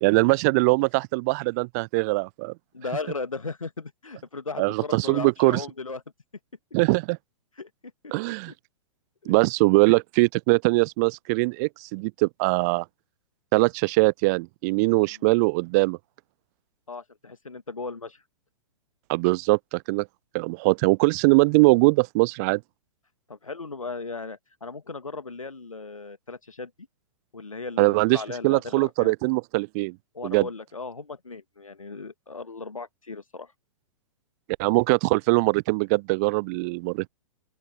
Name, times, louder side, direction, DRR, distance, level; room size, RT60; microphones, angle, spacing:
voice 1, 0.0-2.5 4.6-5.6 6.7-7.2 8.1-8.5 9.3-12.8 13.5-16.0 19.1-20.1 20.3-22.6 27.8-30.0 30.2-30.5 34.6-37.1, right 28 dB, 30° right, 0.5 m, -22 dB
voice 2, 2.7-6.0 7.6-7.7 9.2-9.3 15.1-15.2 16.9-18.2 23.3-26.7 27.3-29.1 30.1-33.5, left 4 dB, 80° left, 2.0 m, -36 dB
open air
figure-of-eight pair, 110°, 17 cm